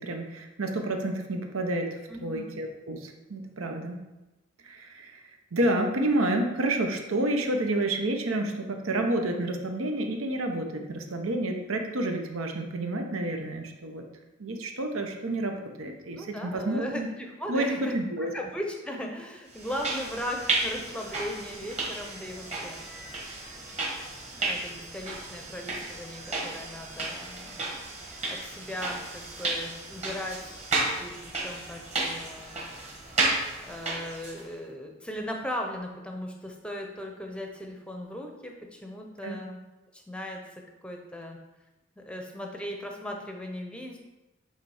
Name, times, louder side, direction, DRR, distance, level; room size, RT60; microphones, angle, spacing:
voice 1, 0.0-4.0 4.6-5.2 5.5-14.0 14.4-17.1 17.5-18.3 39.2-39.4, right 1 dB, 85° right, 4 dB, 0.8 m, -29 dB
voice 2, 2.1-2.6 16.1-22.8 24.3-27.6 28.3-32.6 33.6-39.6 39.9-41.4 42.0-44.0, equal, 5° left, 2 dB, 0.6 m, -38 dB
sound 1, 19.5-34.5, right 2 dB, 30° right, 1.4 m, -33 dB
8.0 x 3.2 x 4.8 m, 1.0 s
head